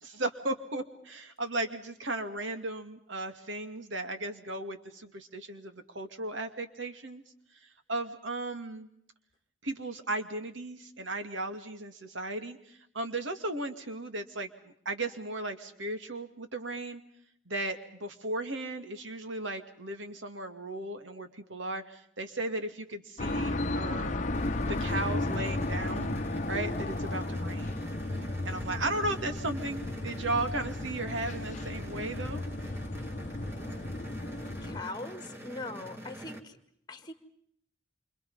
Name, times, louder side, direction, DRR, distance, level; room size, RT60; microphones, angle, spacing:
voice 1, 0.0-7.2 7.9-8.9 9.6-14.5 14.8-17.0 17.5-24.3 24.7-26.1 26.5-27.7 28.4-32.4, right 2 dB, 75° right, 7 dB, 2.4 m, -36 dB
sound 1, 23.2-34.8, left 2 dB, 40° left, 1.0 m, -34 dB
sound 2, 24.3-36.4, right 1 dB, 15° right, 2.4 m, -45 dB
voice 2, 34.6-36.6 36.9-37.1, left 2 dB, 20° left, 9 dB, 1.9 m, -41 dB
28.0 x 26.0 x 5.6 m, 0.68 s
head